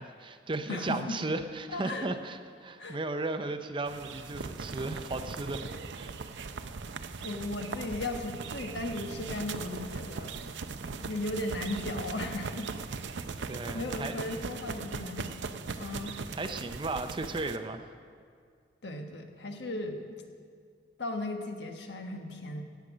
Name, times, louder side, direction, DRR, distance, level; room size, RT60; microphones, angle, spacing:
voice 1, 0.0-5.7 5.9-6.1 13.5-14.4 16.3-17.8, right 2 dB, 30° right, 8 dB, 0.6 m, -35 dB
voice 2, 0.7-1.2 1.7-2.1 2.8-3.0 7.2-10.4 11.0-12.7 13.7-16.1 18.8-20.2 21.0-22.6, left 2 dB, 75° left, 4 dB, 1.3 m, -36 dB
sound 1, 3.9-17.6, right 4 dB, 90° right, 0.6 m, -39 dB
16.5 x 8.2 x 6.2 m, 2.1 s
head